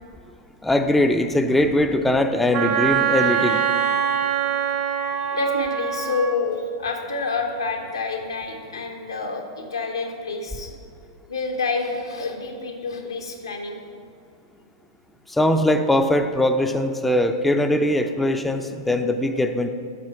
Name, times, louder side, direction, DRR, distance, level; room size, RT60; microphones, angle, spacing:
voice 1, 0.6-3.7 15.3-19.7, left 1 dB, 5° left, 6 dB, 0.4 m, -21 dB
Wind instrument woodwind instrument, 2.5-6.4, right 8 dB, 40° right, 0.7 m, -23 dB
voice 2, 5.3-10.8 11.3-13.8, left 4 dB, 85° left, 3 dB, 1.0 m, -28 dB
7.4 x 5.8 x 4.6 m, 2.4 s
hypercardioid pair, 105°, 2 cm